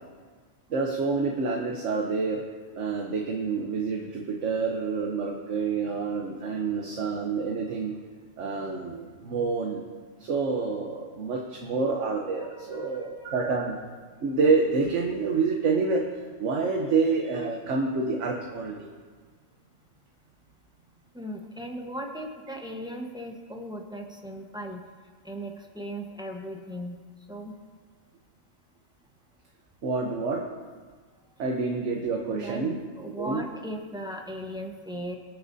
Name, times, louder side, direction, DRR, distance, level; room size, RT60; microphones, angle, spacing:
voice 1, 0.7-2.4 2.7-7.9 8.4-9.8 10.2-13.8 14.2-16.0 16.4-18.9 29.8-30.4 31.4-32.8 33.2-33.4, right 4 dB, 65° right, 1 dB, 1.3 m, -27 dB
voice 2, 12.5-13.3 21.1-24.8 25.2-27.0 27.3-27.5 32.3-32.7 33.0-35.2, equal, 5° right, 1 dB, 1.0 m, -37 dB
23.0 x 7.7 x 2.7 m, 1.5 s
omnidirectional pair, 1.3 m